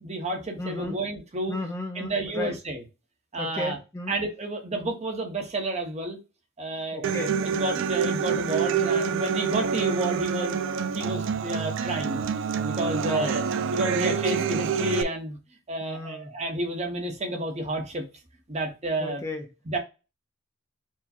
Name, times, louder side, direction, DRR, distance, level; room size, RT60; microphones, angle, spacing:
voice 1, 0.0-1.6 1.9-2.8 3.3-3.8 4.1-6.2 6.6-7.1 7.4-12.2 12.6-13.4 13.7-15.4 15.7-18.1 18.5-19.2 19.7-19.8, right 1 dB, 35° right, 3 dB, 1.0 m, -30 dB
voice 2, 0.6-1.0 1.5-2.5 3.4-4.1 6.9-7.3 13.0-13.3 15.8-16.3 19.0-19.5, left 2 dB, 15° left, 3 dB, 0.5 m, -34 dB
Human voice / Acoustic guitar, 7.0-15.0, right 7 dB, 65° right, 0.4 m, -27 dB
4.6 x 2.2 x 4.2 m, 0.29 s
head